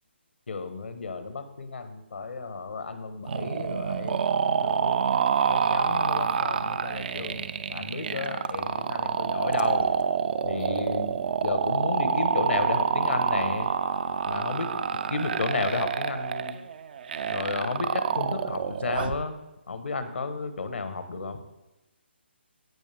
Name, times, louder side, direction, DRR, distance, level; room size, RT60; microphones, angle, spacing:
voice 1, 0.5-5.1 5.5-9.9 10.4-13.7 14.2-14.7 15.1-16.6 17.3-19.4 19.7-21.4, left 4 dB, 75° left, 9 dB, 1.3 m, -33 dB
sound 1, 3.3-19.2, right 7 dB, 50° right, 0.6 m, -27 dB
16.0 x 5.4 x 3.5 m, 0.99 s
hypercardioid pair, 150°, 6 cm